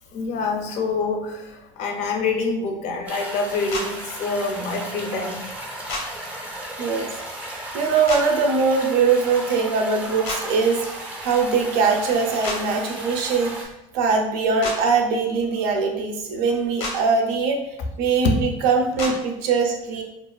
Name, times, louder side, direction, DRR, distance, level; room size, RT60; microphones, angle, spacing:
voice 1, 0.1-5.4 18.2-18.4, left 3 dB, 50° left, 4 dB, 0.4 m, -26 dB
sound 1, 3.1-13.7, right 1 dB, 10° right, 0.5 m, -35 dB
sound 2, 3.7-3.9 5.9-6.0 8.1-8.2 10.2-10.4 12.4-12.6 14.6-14.8 16.8-16.9 19.0-19.1, left 2 dB, 90° left, 0.7 m, -28 dB
voice 2, 7.4-10.9 11.2-13.5 13.9-17.6 18.0-20.0, right 4 dB, 70° right, 3 dB, 0.5 m, -21 dB
2.4 x 2.4 x 2.2 m, 0.90 s
cardioid pair, 135°, 15 cm